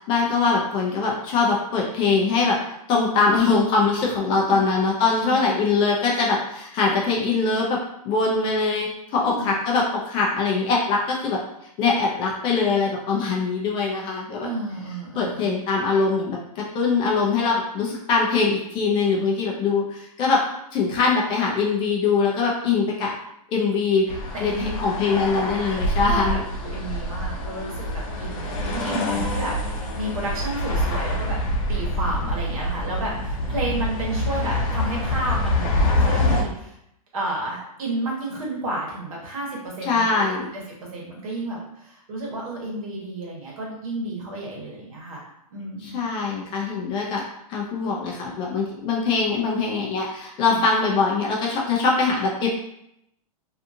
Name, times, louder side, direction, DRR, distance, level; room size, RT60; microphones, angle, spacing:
voice 1, 0.0-2.6 2.9-7.8 8.0-11.4 11.8-14.5 15.2-20.4 20.7-23.1 23.5-26.4 39.8-40.5 45.8-47.2 47.5-52.5, left 4 dB, 25° left, -2 dB, 0.5 m, -22 dB
voice 2, 4.3-4.7 5.2-5.5 9.2-9.5 14.4-15.6 24.3-24.7 26.0-26.2 26.6-27.8 28.2-31.4 31.7-36.8 37.1-40.3 40.5-40.6 40.9-46.0 50.4-50.6, right 1 dB, 60° right, -3 dB, 1.2 m, -31 dB
sound 1, 24.1-36.4, left 1 dB, 60° left, 0.7 m, -25 dB
2.6 x 2.4 x 2.7 m, 0.78 s
hypercardioid pair, 145°, 20 cm